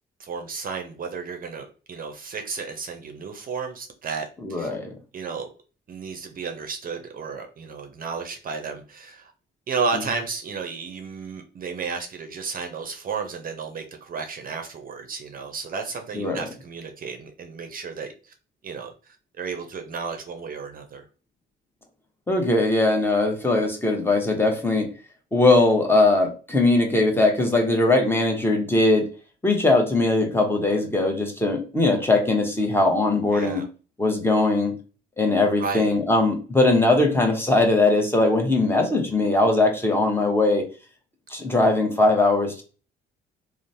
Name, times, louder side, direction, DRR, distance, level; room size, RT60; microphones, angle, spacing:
voice 1, 0.2-4.7 5.1-5.5 5.9-9.3 9.7-18.3 18.6-21.1 33.3-33.7 35.6-35.9, right 5 dB, 45° right, 5 dB, 0.5 m, -33 dB
voice 2, 4.4-4.9 16.1-16.4 22.3-24.9 25.3-29.1 29.4-33.6 34.0-34.7 35.2-40.6 41.3-42.6, left 2 dB, 10° left, 1 dB, 0.8 m, -20 dB
3.0 x 2.0 x 2.6 m, 0.36 s
cardioid pair, 90°, 20 cm